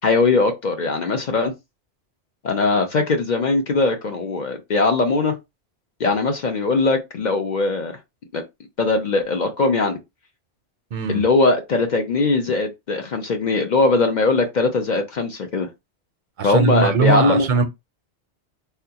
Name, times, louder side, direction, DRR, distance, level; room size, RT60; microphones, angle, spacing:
voice 1, 0.0-1.5 2.4-5.3 6.0-8.0 8.3-8.4 8.8-10.0 11.1-15.7 16.4-17.5, left 3 dB, 50° left, 0.6 m, -20 dB
voice 2, 10.9-11.2 16.4-17.6, right 4 dB, 55° right, 0.6 m, -20 dB
3.6 x 2.3 x 2.8 m
omnidirectional pair, 1.1 m